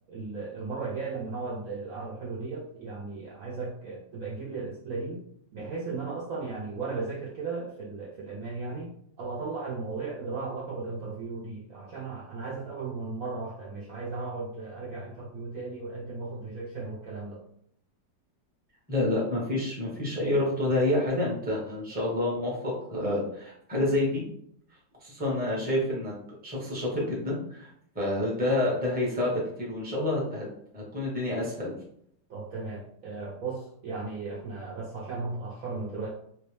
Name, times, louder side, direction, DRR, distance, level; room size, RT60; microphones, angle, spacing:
voice 1, 0.1-5.3 5.5-17.4 32.3-36.1, right 3 dB, 65° right, -4 dB, 0.9 m, -36 dB
voice 2, 18.9-24.2 25.0-26.1 26.4-27.7 27.9-30.5 30.7-31.7, left 1 dB, 5° right, -4 dB, 0.8 m, -28 dB
3.0 x 2.9 x 3.3 m, 0.67 s
omnidirectional pair, 1.9 m